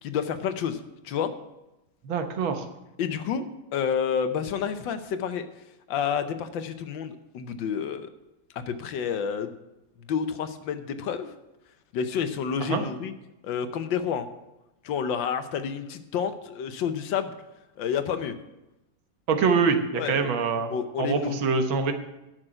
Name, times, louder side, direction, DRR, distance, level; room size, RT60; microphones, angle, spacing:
voice 1, 0.0-1.3 3.0-3.5 3.7-5.5 5.9-8.1 8.5-9.5 10.1-11.3 11.9-13.1 13.4-14.3 14.8-17.3 17.8-18.4 20.0-20.4 20.7-21.5, left 7 dB, 70° left, 10 dB, 1.5 m, -29 dB
voice 2, 2.0-2.7 12.6-12.8 19.3-20.7 21.0-21.9, right 5 dB, 80° right, 7 dB, 1.9 m, -24 dB
11.0 x 6.3 x 8.8 m, 0.95 s
omnidirectional pair, 2.2 m